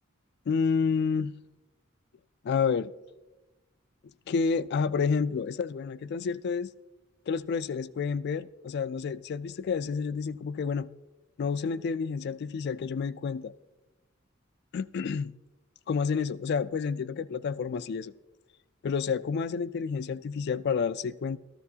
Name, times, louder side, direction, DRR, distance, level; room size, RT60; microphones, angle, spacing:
voice 1, 0.5-1.3 2.4-2.9 4.3-6.7 7.3-10.9 11.4-13.5 14.7-15.3 15.9-18.1 18.8-21.4, left 5 dB, 55° left, 0.3 m, -29 dB
14.0 x 13.0 x 2.8 m
head